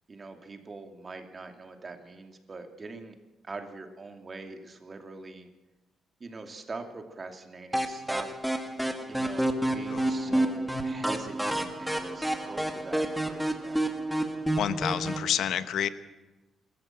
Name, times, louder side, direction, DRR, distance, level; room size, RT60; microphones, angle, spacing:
voice 1, 0.1-3.2 3.4-5.5 6.2-8.3 9.1-13.8, right 3 dB, 30° right, 5 dB, 2.6 m, -43 dB
sound 1, 7.7-15.3, right 1 dB, 5° right, 1.9 m, -29 dB
voice 2, 9.9-10.4 14.6-15.9, left 9 dB, 75° left, 12 dB, 1.0 m, -30 dB
27.0 x 13.5 x 7.5 m, 1.1 s
cardioid pair, 105°, 0 cm